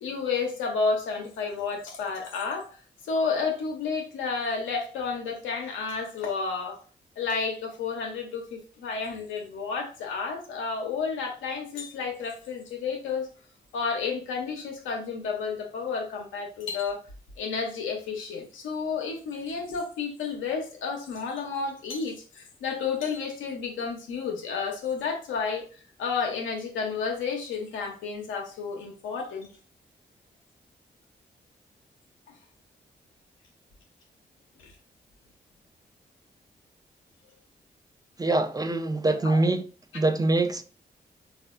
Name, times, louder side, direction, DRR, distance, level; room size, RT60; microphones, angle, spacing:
voice 1, 0.0-6.8 7.2-13.3 13.7-17.0 17.4-29.5 34.6-34.7 39.2-39.4, left 5 dB, 90° left, 0.7 m, -31 dB
voice 2, 38.2-39.7 39.9-40.6, right 2 dB, 20° right, 0.4 m, -24 dB
3.4 x 2.4 x 2.4 m
supercardioid pair, 40°, 19 cm